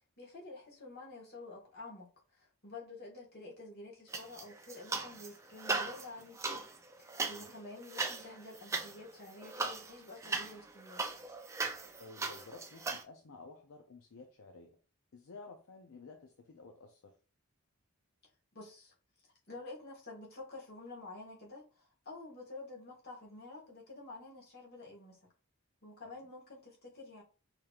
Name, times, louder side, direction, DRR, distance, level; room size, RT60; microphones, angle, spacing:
voice 1, 0.2-6.6 7.0-11.2 18.5-18.9 19.5-25.3 25.8-27.2, left 2 dB, 45° left, 1.5 m, -49 dB
sound 1, 4.1-5.3 5.6-13.0, right 3 dB, 15° right, 0.3 m, -38 dB
voice 2, 12.0-14.8 15.1-17.1, left 3 dB, 65° left, 0.5 m, -53 dB
5.0 x 3.0 x 2.4 m
head